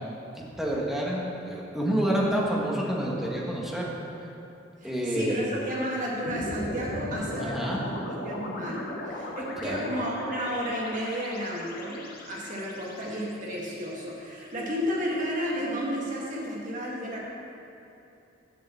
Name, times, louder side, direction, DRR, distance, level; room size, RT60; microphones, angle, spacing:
voice 1, 0.3-3.9 4.8-5.4 7.4-7.8 9.6-9.8, right 1 dB, ahead, -4 dB, 1.4 m, -28 dB
voice 2, 4.8-7.8 8.2-17.2, equal, 40° right, -4 dB, 2.1 m, -32 dB
sound 1, 6.2-14.5, left 1 dB, 50° left, 1.2 m, -37 dB
7.8 x 6.8 x 7.1 m, 2.8 s
head